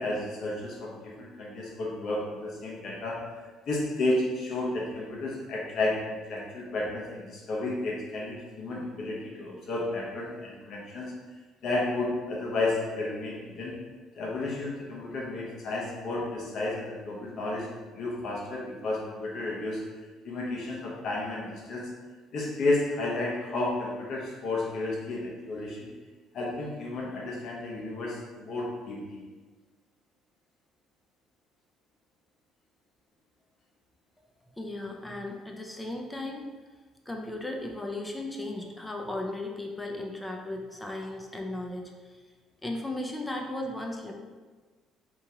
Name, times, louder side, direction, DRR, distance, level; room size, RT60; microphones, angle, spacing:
voice 1, 0.0-3.2 3.7-11.1 11.6-13.7 14.1-19.8 20.2-21.9 22.3-25.9 26.3-29.2, left 2 dB, 60° left, -3 dB, 1.0 m, -32 dB
voice 2, 34.4-36.5 37.1-42.1 42.6-44.1, left 2 dB, 10° left, 1 dB, 0.5 m, -36 dB
3.0 x 2.8 x 3.6 m, 1.3 s
cardioid pair, 110°, 0 cm